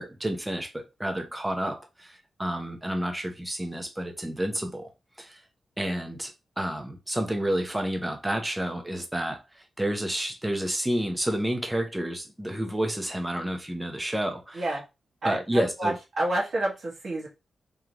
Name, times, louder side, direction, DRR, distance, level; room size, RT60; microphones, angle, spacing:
voice 1, 0.0-4.9 5.2-5.4 5.8-14.8 15.2-15.9, right 1 dB, 10° right, 0.7 m, -30 dB
voice 2, 15.2-17.3, right 1 dB, 50° right, 1.7 m, -29 dB
3.7 x 3.2 x 2.9 m
wide cardioid pair, 160°, 0 cm